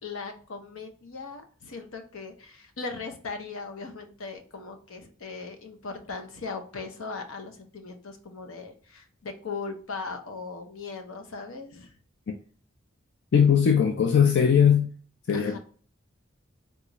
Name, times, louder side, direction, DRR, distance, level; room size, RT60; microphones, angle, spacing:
voice 1, 0.0-11.9 15.3-15.6, left 4 dB, 80° left, 0.7 m, -38 dB
voice 2, 13.3-14.9 15.3-15.6, left 7 dB, 55° left, 0.4 m, -20 dB
3.7 x 2.4 x 3.0 m
head